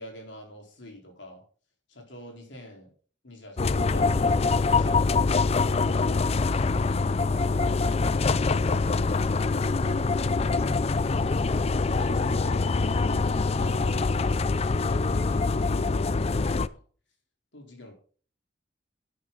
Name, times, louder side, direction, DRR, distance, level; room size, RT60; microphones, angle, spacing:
voice 1, 0.0-1.4 1.9-2.9 3.2-4.2 11.8-14.5 14.8-16.7 17.5-17.9, equal, 80° left, 2 dB, 4.1 m, -46 dB
sound 1, 3.6-16.7, left 3 dB, 35° left, 0.4 m, -24 dB
11.5 x 9.4 x 3.9 m, 0.41 s
head